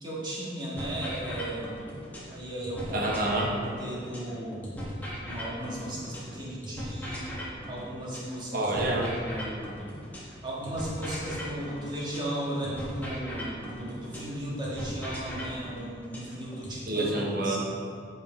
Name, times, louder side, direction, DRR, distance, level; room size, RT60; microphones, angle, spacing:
voice 1, 0.0-1.7 2.3-3.0 3.6-4.7 5.2-7.3 7.7-8.7 9.2-9.8 10.4-17.6, right 1 dB, 25° right, -6 dB, 1.8 m, -36 dB
sound 1, 0.8-2.3 2.6-6.3 6.6-10.3 10.6-14.3 14.6-16.8, equal, 10° left, 1.6 m, -38 dB
voice 2, 2.9-3.5 8.5-9.1 16.9-17.6, right 2 dB, 55° right, -1 dB, 1.2 m, -27 dB
8.2 x 5.4 x 4.5 m, 2.2 s
head